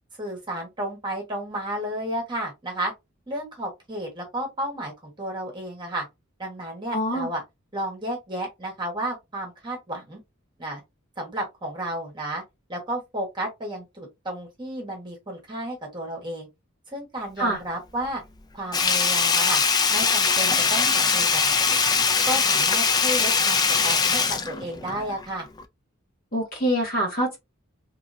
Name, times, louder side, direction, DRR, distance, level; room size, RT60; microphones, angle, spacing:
voice 1, 0.2-2.9 3.3-6.0 6.4-7.4 7.7-10.2 10.6-10.8 11.2-12.4 12.7-16.5 16.9-18.2 18.5-19.6 19.9-21.5 22.2-25.5, right 1 dB, 20° right, 1.2 m, -32 dB
voice 2, 6.9-7.3 17.4-17.6 26.3-27.4, equal, 45° left, 1.7 m, -25 dB
Sink (filling or washing), 18.7-25.2 25.6-25.7, left 5 dB, 20° left, 0.3 m, -21 dB
3.0 x 2.8 x 2.6 m
head